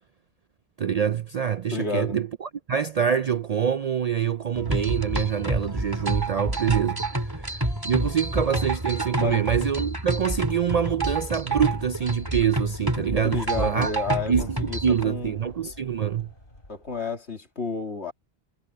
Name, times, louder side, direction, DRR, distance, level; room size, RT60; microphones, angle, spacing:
voice 1, 0.8-13.9 14.3-16.3, right 8 dB, 55° right, 0.4 m, -26 dB
voice 2, 1.7-2.2 9.2-9.5 13.2-15.4 16.7-18.1, left 5 dB, 80° left, 2.8 m, -31 dB
sound 1, 4.5-15.0, right 2 dB, 20° right, 2.7 m, -28 dB
sound 2, 11.4-17.3, left 1 dB, 55° left, 6.8 m, -50 dB
omnidirectional pair, 1.1 m